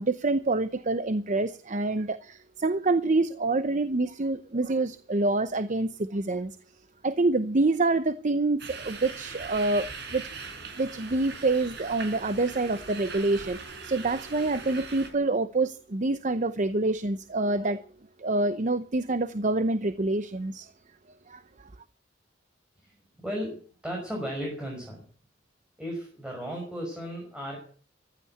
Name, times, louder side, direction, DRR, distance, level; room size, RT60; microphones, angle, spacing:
voice 1, 0.0-6.6 7.0-10.2 10.8-17.8 18.2-20.7 21.3-21.7, right 2 dB, 40° right, 0.8 m, -27 dB
sound 1, 8.6-15.1, right 4 dB, 60° right, 5.3 m, -41 dB
voice 2, 23.2-25.0 25.8-27.6, equal, 5° right, 5.8 m, -35 dB
15.5 x 11.5 x 8.0 m
head